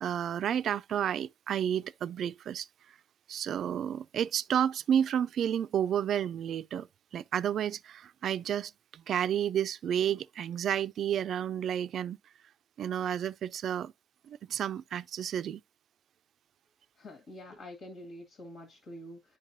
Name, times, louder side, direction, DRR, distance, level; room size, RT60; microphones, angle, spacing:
voice 1, 0.0-2.7 3.3-6.9 7.1-12.2 12.8-13.9 14.3-15.6, right 9 dB, 65° right, 0.3 m, -31 dB
voice 2, 17.0-19.4, left 1 dB, 65° left, 1.9 m, -46 dB
9.1 x 5.3 x 2.7 m
cardioid pair, 90°, 0 cm